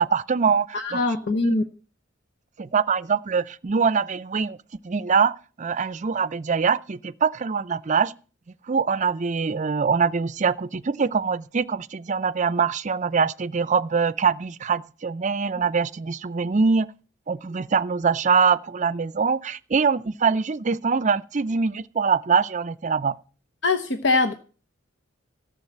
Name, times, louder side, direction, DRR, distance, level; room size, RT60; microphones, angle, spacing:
voice 1, 0.0-1.0 1.3-1.6 2.6-4.6 4.8-8.1 8.7-16.9 17.3-23.2, right 5 dB, 40° right, 0.5 m, -23 dB
voice 2, 0.7-1.7 23.6-24.3, left 3 dB, 65° left, 1.0 m, -22 dB
14.0 x 7.2 x 7.3 m
head